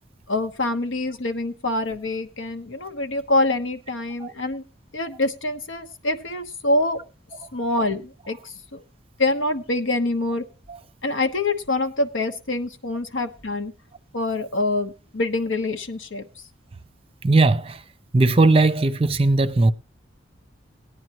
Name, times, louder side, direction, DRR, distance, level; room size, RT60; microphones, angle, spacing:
voice 1, 0.3-4.6 4.9-7.0 7.5-8.8 9.2-10.4 11.0-13.7 14.1-16.3, left 2 dB, 90° left, 1.1 m, -25 dB
voice 2, 17.2-17.8 18.1-19.7, right 2 dB, 30° right, 0.5 m, -18 dB
18.5 x 9.6 x 3.0 m
head